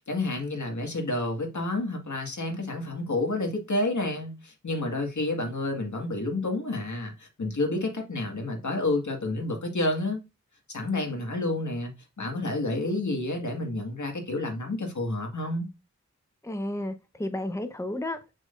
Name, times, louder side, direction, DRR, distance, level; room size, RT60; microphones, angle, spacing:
voice 1, 0.1-10.2 10.7-15.7, left 2 dB, 75° left, 2.0 m, -29 dB
voice 2, 16.4-18.3, left 1 dB, 10° left, 0.9 m, -32 dB
6.4 x 6.2 x 2.6 m
wide cardioid pair, 45°, 29 cm